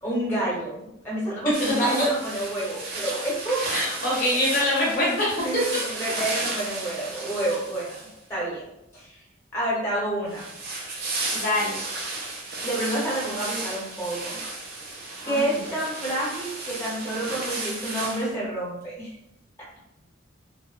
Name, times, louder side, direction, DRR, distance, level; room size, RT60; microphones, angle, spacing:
voice 1, 0.0-3.6 5.4-8.0 8.3-8.6 8.9-9.2 9.5-10.5 12.6-14.4 15.3-19.1, right 1 dB, 10° left, -7 dB, 0.8 m, -28 dB
sound 1, 1.5-8.3 10.3-18.3, right 3 dB, 50° right, 0.4 m, -34 dB
voice 2, 3.7-5.4 11.3-11.8 15.2-15.5, left 1 dB, 45° left, -6 dB, 0.6 m, -24 dB
2.6 x 2.2 x 2.3 m, 0.85 s
head